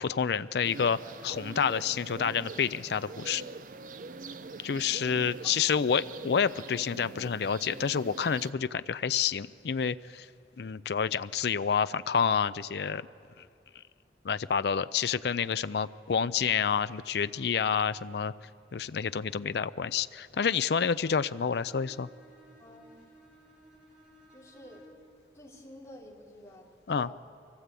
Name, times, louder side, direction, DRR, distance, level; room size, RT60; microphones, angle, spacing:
voice 1, 0.0-3.5 4.6-10.3 10.6-13.0 14.2-18.3 18.7-22.1 26.9-27.1, left 6 dB, 65° left, 14 dB, 0.4 m, -29 dB
sound 1, 0.6-8.5, right 3 dB, 50° right, 0.5 m, -44 dB
voice 2, 5.4-5.9 22.6-23.0 24.3-24.8 25.3-27.2, left 1 dB, 15° left, -4 dB, 3.3 m, -50 dB
Bowed string instrument, 21.1-25.2, right 1 dB, 5° right, 4.6 m, -57 dB
24.5 x 16.0 x 8.3 m, 2.6 s
head